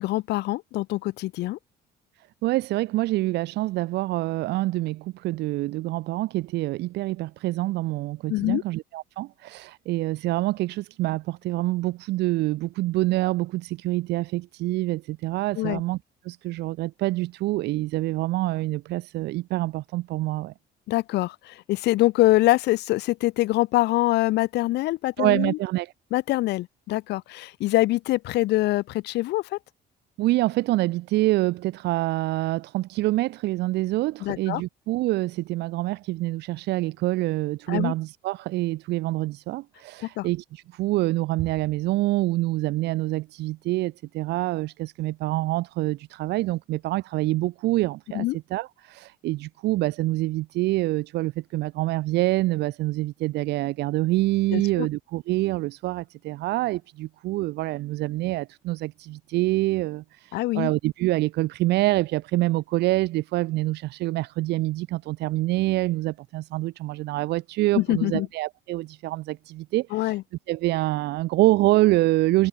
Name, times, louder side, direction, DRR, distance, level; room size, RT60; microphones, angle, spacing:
voice 1, 0.0-1.6 8.3-8.6 15.6-15.8 20.9-25.6 26.1-29.6 34.2-34.6 37.7-37.9 40.2-40.3 48.1-48.4 54.5-54.9 60.3-60.7 67.7-68.3 69.9-70.2, left 18 dB, 85° left, 6.9 m, -24 dB
voice 2, 2.4-16.0 16.2-20.5 25.2-25.9 30.2-70.2 70.5-72.5, right 18 dB, 85° right, 7.1 m, -26 dB
cardioid pair, 110°, 17 cm